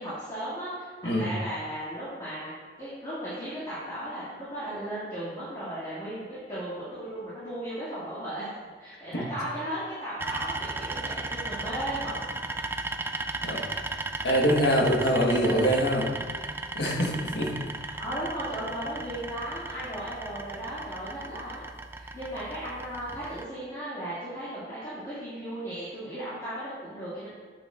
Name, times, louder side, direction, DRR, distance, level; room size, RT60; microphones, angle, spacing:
voice 1, 0.0-2.5 2.8-8.5 8.8-12.3 17.8-21.6 21.9-27.3, right 1 dB, 20° left, -12 dB, 2.2 m, -36 dB
voice 2, 1.0-1.3 9.1-9.3 13.4-13.6 14.2-16.3 16.7-17.5, equal, 70° left, -1 dB, 1.3 m, -24 dB
sound 1, 10.2-23.4, right 2 dB, 15° right, 0.3 m, -36 dB
8.5 x 7.0 x 2.5 m, 1.5 s
head